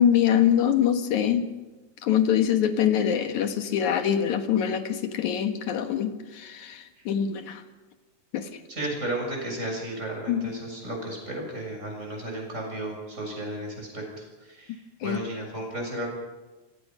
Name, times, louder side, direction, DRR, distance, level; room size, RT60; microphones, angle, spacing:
voice 1, 0.0-1.5 2.0-7.6 8.3-8.5 10.3-10.5 15.0-15.2, left 9 dB, 60° left, 7 dB, 2.4 m, -24 dB
voice 2, 8.7-14.0 14.4-16.1, right 1 dB, 15° right, 0 dB, 7.1 m, -34 dB
28.5 x 18.0 x 5.6 m, 1.2 s
omnidirectional pair, 4.4 m